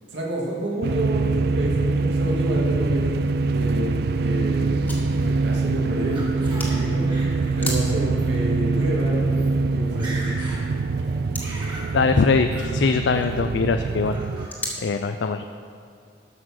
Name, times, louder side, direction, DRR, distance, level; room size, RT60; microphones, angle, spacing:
voice 1, 0.1-3.1 3.5-7.0 7.6-10.2, right 1 dB, 80° right, -3 dB, 2.2 m, -29 dB
sound 1, 0.8-14.5, right 3 dB, 60° right, 0.4 m, -24 dB
sound 2, 3.8-14.8, left 1 dB, 10° left, 1.8 m, -40 dB
Laughter, 5.2-6.8 7.1-7.7 8.1-8.3 9.0-9.1 9.3-9.5 9.8-10.6 11.0-11.9 12.5-12.7 13.1-13.6 14.0-14.5, right 1 dB, 25° right, 2.4 m, -40 dB
voice 2, 11.9-14.2 14.8-15.4, left 4 dB, 75° left, 7 dB, 0.4 m, -22 dB
12.0 x 6.1 x 6.4 m, 2.2 s
head